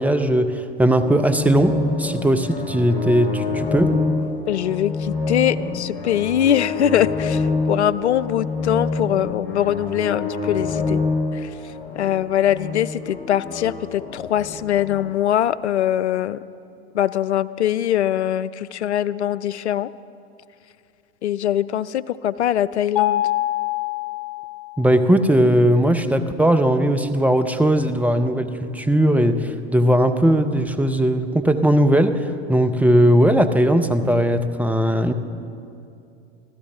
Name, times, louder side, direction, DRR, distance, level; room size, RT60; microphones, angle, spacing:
voice 1, 0.0-3.9 24.8-35.1, right 1 dB, 5° right, 9 dB, 0.8 m, -18 dB
sound 1, 0.9-15.0, left 3 dB, 35° left, 5.1 m, -27 dB
voice 2, 4.5-11.0 11.3-11.5 12.0-16.4 16.9-19.9 21.2-23.2, left 11 dB, 80° left, 17 dB, 0.5 m, -22 dB
Mallet percussion, 23.0-24.9, left 14 dB, 60° left, 1.0 m, -24 dB
25.0 x 15.5 x 3.5 m, 2.6 s
hypercardioid pair, 90°, 33 cm